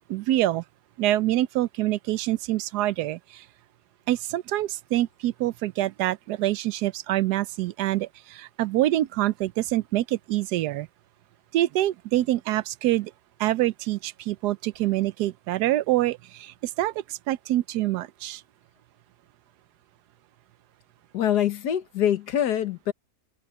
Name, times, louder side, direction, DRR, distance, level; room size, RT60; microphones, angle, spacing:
voice 1, 0.1-0.6 1.0-3.4 4.1-10.9 11.5-13.1 13.4-18.4, right 15 dB, 85° right, 1.2 m, -26 dB
voice 2, 21.1-22.9, left 10 dB, 85° left, 1.6 m, -24 dB
omnidirectional pair, 1.7 m